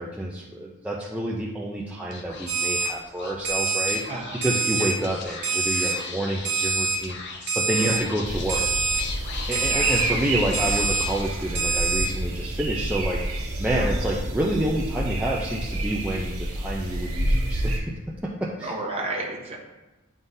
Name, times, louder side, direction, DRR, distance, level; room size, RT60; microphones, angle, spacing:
voice 1, 0.0-4.0 4.3-7.2 7.5-8.7 9.5-17.9 18.2-18.8, right 1 dB, 5° right, -4 dB, 0.4 m, -28 dB
Speech / Whispering, 2.0-11.9, left 4 dB, 55° left, 0.7 m, -39 dB
Alarm, 2.5-2.9 3.4-4.0 4.4-4.9 5.4-5.9 6.4-7.0 7.5-8.0 8.5-9.0 9.5-10.0 10.5-11.0 11.5-12.1, right 4 dB, 55° right, 1.2 m, -25 dB
voice 2, 4.1-4.4 4.8-4.9 7.8-8.0 9.5-10.1 13.8-13.9 18.6-19.6, right 2 dB, 30° right, -1 dB, 1.0 m, -32 dB
sound 1, 8.2-17.8, right 1 dB, 75° right, 1.3 m, -28 dB
9.5 x 3.7 x 2.7 m, 1.1 s
head